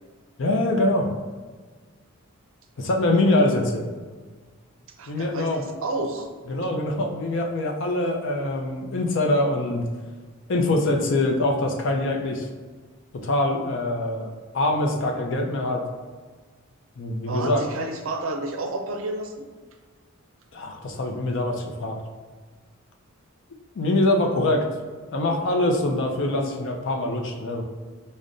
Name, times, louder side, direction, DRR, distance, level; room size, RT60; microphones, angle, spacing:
voice 1, 0.4-1.1 2.8-3.9 5.1-5.7 6.5-9.9 10.5-12.5 13.1-15.8 17.0-17.6 20.5-22.0 23.8-24.7 25.1-27.6, left 1 dB, 60° left, 2 dB, 0.5 m, -24 dB
voice 2, 5.0-6.3 17.3-19.5, right 2 dB, 65° right, 4 dB, 0.5 m, -30 dB
5.1 x 2.1 x 2.5 m, 1.5 s
head